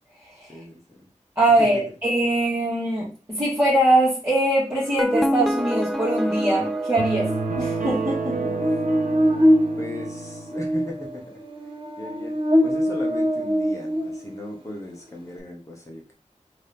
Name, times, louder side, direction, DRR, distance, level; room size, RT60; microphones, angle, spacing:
voice 1, 0.5-1.1 1.6-1.8 8.3-8.7 9.4-9.5 9.8-11.3 12.0-12.3 12.6-16.1, left 1 dB, 25° left, -1 dB, 1.1 m, -37 dB
voice 2, 1.3-7.3 7.6-8.4, right 1 dB, 15° right, -10 dB, 1.7 m, -22 dB
sound 1, 4.8-7.9, equal, ahead, 0.3 m, -28 dB
Buzz, 5.1-14.6, equal, 40° right, 0.9 m, -24 dB
sound 2, 7.0-10.5, right 4 dB, 90° right, 0.9 m, -29 dB
3.6 x 2.8 x 3.4 m, 0.37 s
wide cardioid pair, 50°, 13 cm